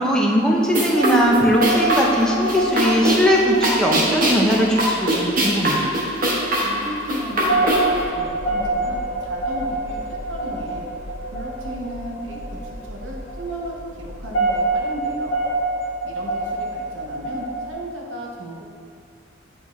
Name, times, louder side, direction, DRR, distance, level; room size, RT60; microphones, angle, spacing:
voice 1, 0.0-5.9, equal, 5° left, -2 dB, 0.6 m, -19 dB
sound 1, 0.6-8.0, right 1 dB, 50° right, 1.0 m, -22 dB
sound 2, 0.9-17.7, right 2 dB, 75° left, 1.2 m, -27 dB
voice 2, 6.6-10.9 11.3-15.4 16.0-18.6, right 1 dB, 90° right, -1 dB, 0.9 m, -34 dB
sound 3, 7.4-15.2, equal, 35° left, 1.3 m, -38 dB
8.7 x 3.5 x 3.1 m, 2.3 s
head